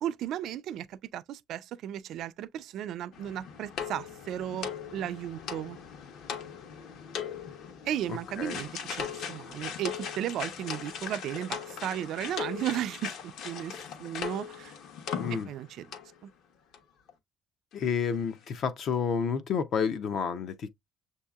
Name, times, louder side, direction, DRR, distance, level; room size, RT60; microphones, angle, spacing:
voice 1, 0.0-5.8 7.8-14.7 15.3-15.9 16.2-16.3, right 11 dB, 50° right, 0.3 m, -35 dB
sound 1, 3.1-15.7 15.9-16.1 16.7-16.8 17.1-17.2, left 7 dB, 60° left, 1.0 m, -39 dB
voice 2, 15.1-15.5 17.7-20.7, left 6 dB, 40° left, 0.5 m, -30 dB
7.0 x 2.7 x 2.3 m
cardioid pair, 170°, 0 cm